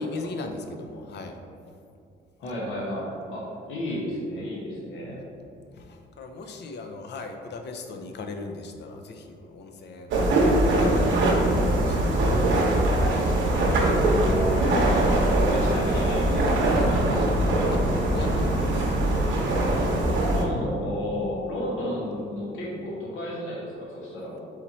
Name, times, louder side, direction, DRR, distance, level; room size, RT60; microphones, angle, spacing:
voice 1, 0.0-1.4 5.7-10.1 10.5-12.6 13.4-13.6 17.7-17.8 18.1-18.9, left 3 dB, 60° left, 5 dB, 0.5 m, -38 dB
voice 2, 2.4-5.2 13.9-17.8 20.3-24.4, equal, 80° left, -4 dB, 1.0 m, -32 dB
sound 1, 10.1-20.4, right 1 dB, 70° right, 0.9 m, -22 dB
4.1 x 3.0 x 4.0 m, 2.5 s
cardioid pair, 90°, 20 cm